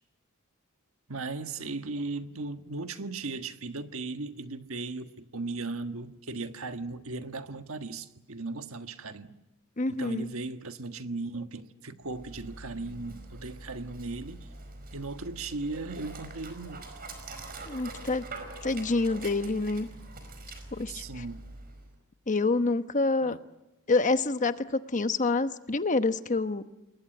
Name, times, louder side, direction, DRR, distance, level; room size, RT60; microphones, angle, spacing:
voice 1, 1.1-9.4 9.9-14.5 14.9-16.9 20.9-21.5 23.2-23.4, right 3 dB, 70° right, 1.5 m, -37 dB
voice 2, 9.8-10.3 17.7-18.2 18.6-19.9 20.8-21.2 22.3-23.4 23.9-26.6, left 3 dB, 35° left, 1.0 m, -27 dB
Dog, 12.0-22.0, right 2 dB, 45° right, 5.0 m, -44 dB
28.5 x 21.5 x 9.2 m
head